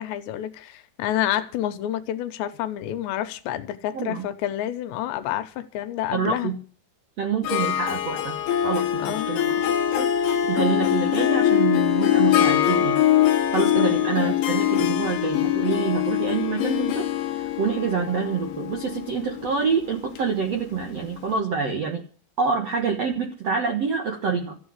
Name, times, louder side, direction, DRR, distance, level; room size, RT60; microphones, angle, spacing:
voice 1, 0.0-6.5 9.0-9.3 13.8-14.0, left 12 dB, 85° left, 3.1 m, -29 dB
voice 2, 3.9-4.3 6.1-6.6 7.2-8.4 8.6-9.6 10.0-22.0 22.4-24.6, right 5 dB, 70° right, 1.5 m, -27 dB
Harp, 7.4-21.0, left 11 dB, 65° left, 2.3 m, -23 dB
14.0 x 7.9 x 9.9 m
omnidirectional pair, 5.1 m